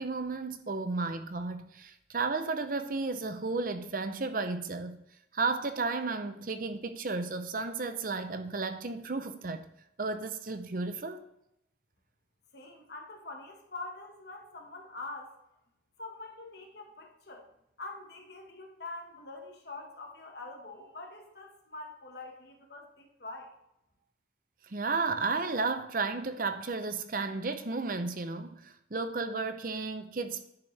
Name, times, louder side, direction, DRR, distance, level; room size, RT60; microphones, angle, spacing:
voice 1, 0.0-5.0 5.3-9.7 10.0-11.2 24.6-30.4, right 3 dB, 50° right, 0.7 m, -33 dB
voice 2, 12.5-15.4 16.0-17.5 17.8-23.5, left 2 dB, 60° left, 1.5 m, -44 dB
9.9 x 6.7 x 3.3 m
head